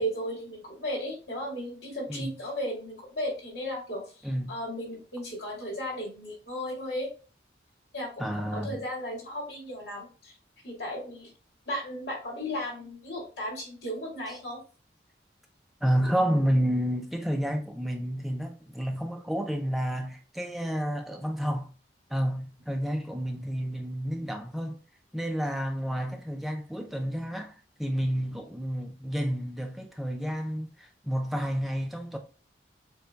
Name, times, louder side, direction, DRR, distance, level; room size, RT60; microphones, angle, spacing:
voice 1, 0.0-7.1 7.9-10.3 10.6-11.3 11.7-14.6, equal, 75° left, 2.2 m, -35 dB
voice 2, 8.2-8.8 15.8-21.7 22.1-24.8 25.1-27.5 27.8-32.2, equal, ahead, 0.4 m, -30 dB
6.6 x 2.3 x 2.2 m
head